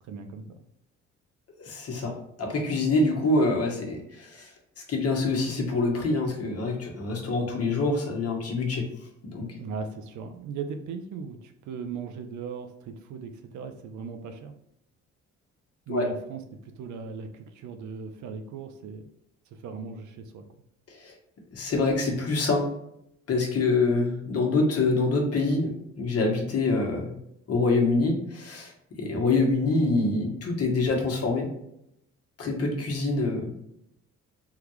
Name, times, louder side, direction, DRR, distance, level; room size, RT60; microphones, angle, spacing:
voice 1, 0.1-0.4 9.5-14.5 15.9-16.4 16.8-19.0 19.6-20.4 29.0-29.1, right 5 dB, 70° right, 6 dB, 0.5 m, -38 dB
voice 2, 1.6-4.5 4.9-8.8 9.3-9.5 15.9-16.1 20.9-21.1 21.5-22.6 23.3-25.7 26.0-27.1 27.5-28.7 29.0-31.5 32.4-33.5, left 3 dB, 50° left, 1 dB, 1.0 m, -25 dB
3.6 x 2.3 x 3.0 m, 0.77 s
cardioid pair, 90°, 30 cm